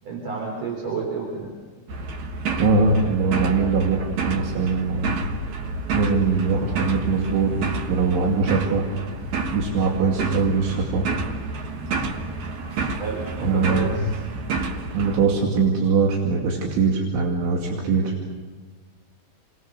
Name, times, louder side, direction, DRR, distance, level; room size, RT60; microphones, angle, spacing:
voice 1, 0.0-1.5 13.0-14.1, right 4 dB, 40° right, -1 dB, 4.3 m, -30 dB
sound 1, 1.9-15.2, right 3 dB, 65° right, 1.9 m, -29 dB
voice 2, 2.6-5.2 5.9-7.5 7.9-8.8 9.5-11.1 13.4-14.1 14.9-18.1, right 4 dB, 85° right, -1 dB, 4.9 m, -22 dB
29.5 x 22.5 x 6.6 m, 1.4 s
omnidirectional pair, 5.3 m